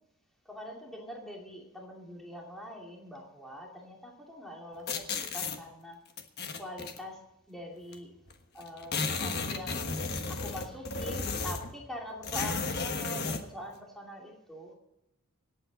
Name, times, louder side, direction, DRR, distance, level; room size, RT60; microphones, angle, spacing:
voice 1, 0.4-6.0 6.6-7.2 7.5-8.1 8.5-9.8 10.3-14.7, left 1 dB, ahead, -2 dB, 2.6 m, -44 dB
sound 1, 4.9-5.6 6.2-7.0 7.9-8.0 8.3-8.4 8.6-11.8 12.2-13.5, left 4 dB, 50° left, 1.3 m, -33 dB
26.0 x 9.1 x 4.0 m, 0.90 s
head